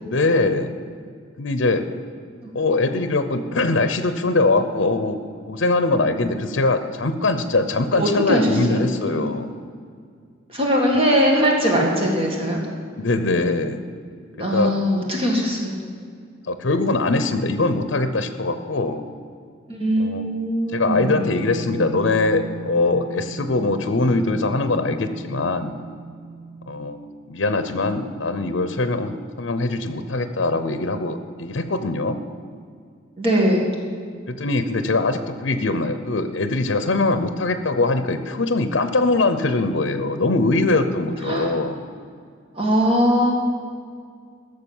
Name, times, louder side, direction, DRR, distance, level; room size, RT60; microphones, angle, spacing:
voice 1, 0.0-0.7 1.4-1.8 2.5-5.2 5.5-9.5 13.0-13.8 14.5-14.7 16.4-19.0 20.0-20.3 20.7-25.7 26.7-27.0 27.3-32.2 34.3-41.8, left 2 dB, 70° left, 10 dB, 0.7 m, -22 dB
voice 2, 8.0-9.3 10.5-12.6 14.3-15.8 19.7-21.2 33.2-33.7 41.2-41.5 42.5-43.3, equal, 30° right, -1 dB, 1.9 m, -21 dB
Wind instrument woodwind instrument, 20.6-26.8, right 5 dB, 30° left, 3.9 m, -37 dB
14.5 x 6.6 x 7.1 m, 2.1 s
head